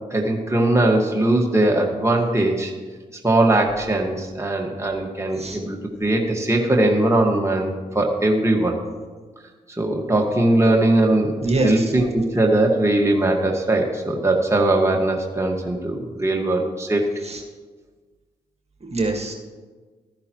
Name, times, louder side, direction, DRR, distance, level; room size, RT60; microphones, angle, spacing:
voice 1, 0.1-2.7 3.2-8.8 9.8-11.3 11.6-17.0, right 2 dB, 15° right, 0 dB, 1.7 m, -20 dB
voice 2, 11.4-11.9 17.3-17.4 18.8-19.3, right 2 dB, 35° right, 1 dB, 1.7 m, -23 dB
14.0 x 10.5 x 3.0 m, 1.4 s
supercardioid pair, 40°, 17 cm